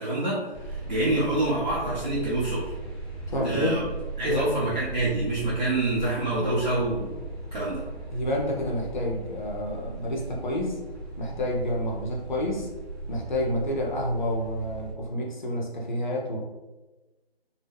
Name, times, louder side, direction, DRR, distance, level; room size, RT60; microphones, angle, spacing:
voice 1, 0.0-2.7 3.4-3.8 4.2-7.2 7.5-7.8, right 2 dB, 45° right, -7 dB, 0.6 m, -27 dB
sound 1, 0.5-14.9, right 3 dB, 15° right, 0.8 m, -38 dB
voice 2, 3.3-3.8 4.2-4.6 8.1-10.8 11.2-12.7 13.1-16.4, equal, 50° left, -1 dB, 0.6 m, -29 dB
2.1 x 2.1 x 3.3 m, 1.1 s
figure-of-eight pair, 160°, 31 cm